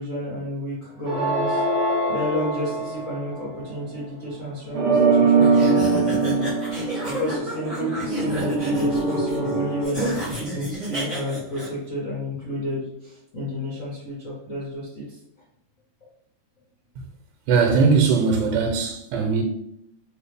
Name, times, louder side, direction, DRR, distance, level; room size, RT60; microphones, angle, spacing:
voice 1, 0.0-1.6 2.1-6.5 7.0-15.0, equal, 90° left, 0.7 m, -30 dB
sound 1, 1.1-3.6 4.7-9.8, right 3 dB, 65° right, 0.9 m, -23 dB
sound 2, 5.4-11.7, equal, 25° right, 0.7 m, -31 dB
voice 2, 17.5-19.4, right 5 dB, 85° right, 2.1 m, -20 dB
4.7 x 2.7 x 3.3 m
omnidirectional pair, 3.7 m